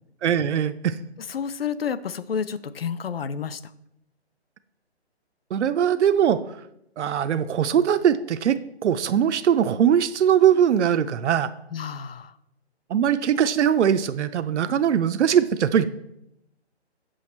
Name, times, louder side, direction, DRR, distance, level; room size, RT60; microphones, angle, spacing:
voice 1, 0.2-1.0 5.5-6.6 7.0-11.5 12.9-15.8, right 9 dB, 90° right, 12 dB, 0.5 m, -21 dB
voice 2, 1.3-3.6 11.7-12.3, left 7 dB, 60° left, 15 dB, 0.4 m, -30 dB
6.3 x 5.0 x 4.3 m, 0.82 s
hypercardioid pair, 175°, 34 cm